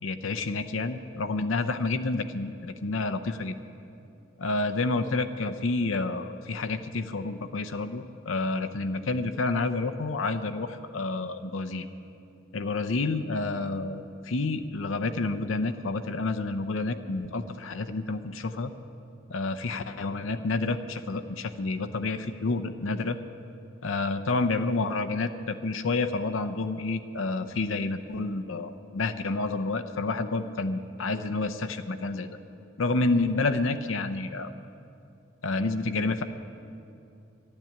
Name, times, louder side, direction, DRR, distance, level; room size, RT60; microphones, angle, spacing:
voice 1, 0.0-3.5 4.4-11.9 12.5-18.7 19.3-23.2 23.8-32.3 32.8-34.5 35.4-36.2, left 3 dB, 70° left, 9 dB, 0.6 m, -29 dB
12.0 x 10.5 x 8.7 m, 2.7 s
head